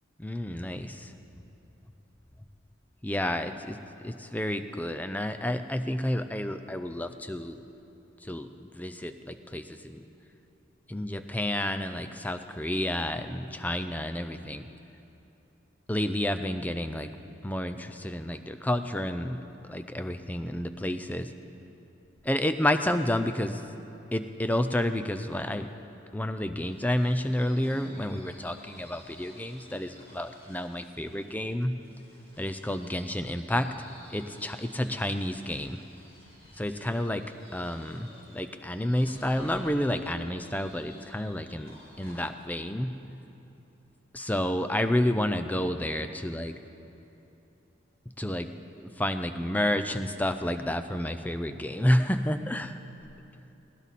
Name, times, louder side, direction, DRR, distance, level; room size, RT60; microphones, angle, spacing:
voice 1, 0.2-1.1 3.0-7.6 8.2-10.0 10.9-14.7 15.9-17.1 17.4-19.4 19.7-21.3 22.2-23.6 24.1-25.7 26.1-31.7 32.4-33.7 34.1-35.8 36.6-37.2 37.5-42.9 44.1-46.5 48.2-48.5 48.8-52.8, left 1 dB, 10° left, 9 dB, 0.5 m, -30 dB
sound 1, 26.7-42.3, equal, 30° left, 4.3 m, -53 dB
19.5 x 17.5 x 4.2 m, 3.0 s
head